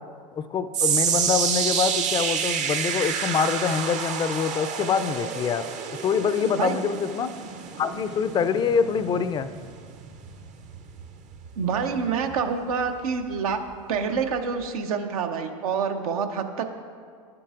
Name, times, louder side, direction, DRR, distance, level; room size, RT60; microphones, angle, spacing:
voice 1, 0.3-7.3 7.8-9.5, left 6 dB, 25° left, 12 dB, 0.4 m, -25 dB
sound 1, 0.7-13.1 13.4-13.7 14.4-14.5, right 7 dB, 40° right, 0.7 m, -29 dB
voice 2, 11.6-13.6 13.9-16.7, right 6 dB, 75° right, 7 dB, 0.7 m, -27 dB
12.0 x 7.6 x 2.5 m, 2.1 s
hypercardioid pair, 95°, 19 cm